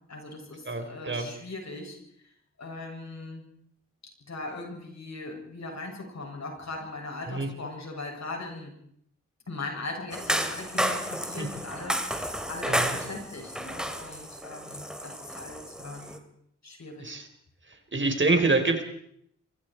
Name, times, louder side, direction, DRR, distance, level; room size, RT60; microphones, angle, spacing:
voice 1, 0.1-2.0 2.6-3.5 4.3-8.7 9.5-16.2 16.6-17.1, left 2 dB, 60° left, 1 dB, 7.6 m, -39 dB
voice 2, 0.6-1.3 7.3-7.5 11.4-11.5 12.7-13.0 15.8-16.1 17.0-17.3 17.7-18.8, right 3 dB, 40° right, 6 dB, 4.6 m, -27 dB
sound 1, 10.1-16.2, equal, ahead, 3.1 m, -32 dB
24.5 x 22.5 x 4.8 m, 0.70 s
cardioid pair, 45°, 31 cm